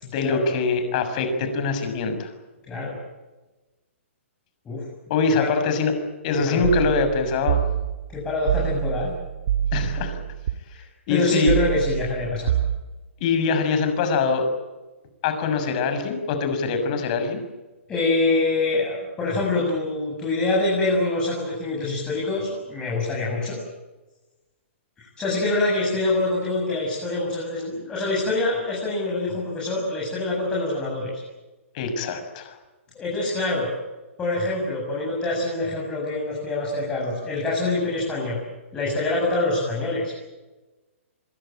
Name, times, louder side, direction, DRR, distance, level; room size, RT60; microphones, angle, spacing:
voice 1, 0.0-2.3 5.1-5.9 6.2-7.6 9.7-10.2 11.1-11.5 13.2-14.5 15.2-17.4 31.7-32.6, left 4 dB, 35° left, 7 dB, 6.6 m, -23 dB
voice 2, 2.6-2.9 4.6-4.8 5.4-5.5 6.3-6.7 8.1-9.1 10.7-12.5 17.9-23.6 25.0-31.1 32.9-33.7 34.2-38.4 38.7-40.1, left 2 dB, 10° left, -4 dB, 7.7 m, -25 dB
sound 1, 6.6-10.5 11.5-12.8, right 11 dB, 50° right, 2.0 m, -26 dB
25.0 x 23.0 x 9.0 m, 1.1 s
hypercardioid pair, 160°, 7 cm